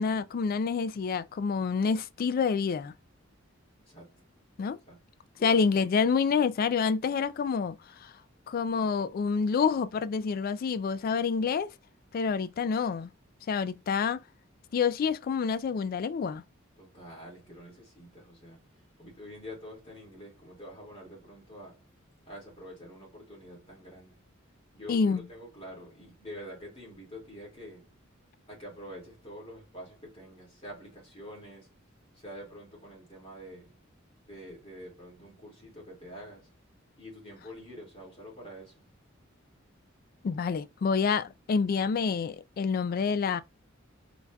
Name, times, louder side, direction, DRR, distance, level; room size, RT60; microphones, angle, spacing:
voice 1, 0.0-2.9 4.6-4.8 5.4-7.8 8.0-8.1 8.5-11.7 12.1-13.1 13.5-14.2 14.7-16.4 24.9-25.2 40.2-43.4, left 5 dB, 45° left, 0.3 m, -27 dB
voice 2, 3.8-4.3 4.9-5.0 5.4-5.7 16.8-18.6 19.0-21.9 22.2-24.2 24.7-27.9 28.5-31.7 32.2-33.8 34.3-36.5 37.0-38.9, equal, 30° left, 2.3 m, -46 dB
4.0 x 3.3 x 2.3 m
head